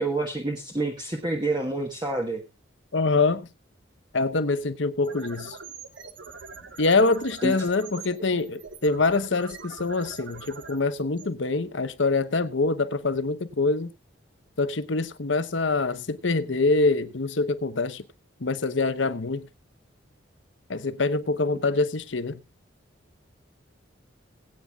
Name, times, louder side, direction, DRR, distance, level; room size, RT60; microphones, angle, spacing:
voice 1, 0.0-2.4 7.4-7.7, right 2 dB, 20° right, 1.3 m, -28 dB
voice 2, 2.9-3.5 4.1-5.6 6.8-13.9 14.6-18.0 18.4-19.5 20.7-22.4, left 3 dB, 70° left, 1.0 m, -25 dB
Sci-Fi Wave Sine, 5.0-12.0, right 4 dB, 75° right, 1.5 m, -43 dB
20.5 x 9.0 x 2.4 m
head